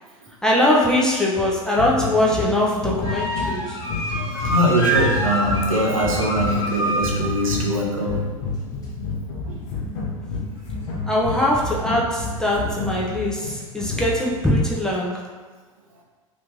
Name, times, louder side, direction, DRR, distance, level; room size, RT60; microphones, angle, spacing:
voice 1, 0.4-3.8 11.1-15.2, left 1 dB, 5° left, -4 dB, 0.4 m, -21 dB
sound 1, 1.8-14.4, left 3 dB, 50° left, 0.7 m, -29 dB
sound 2, 3.0-7.3, right 2 dB, 20° left, 1.1 m, -26 dB
voice 2, 4.2-8.3 9.5-9.6 12.6-12.7, equal, 75° right, -2 dB, 0.7 m, -23 dB
3.2 x 3.1 x 2.5 m, 1.3 s
figure-of-eight pair, 85°, 18 cm